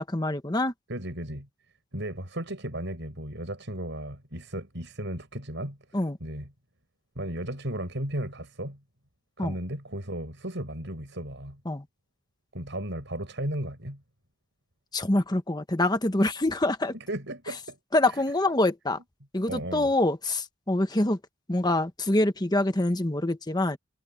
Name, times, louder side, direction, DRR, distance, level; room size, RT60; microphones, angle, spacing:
voice 1, 0.0-0.7 5.9-6.2 9.4-9.5 11.6-11.8 14.9-16.9 17.9-19.0 19.3-21.2 21.5-23.8, left 1 dB, 20° left, 1.2 m, -25 dB
voice 2, 0.9-1.5 1.9-5.8 6.2-6.5 7.2-8.8 9.4-11.6 12.5-14.0 16.9-17.8 18.1-18.2 19.5-19.9, right 1 dB, 60° right, 7.7 m, -35 dB
head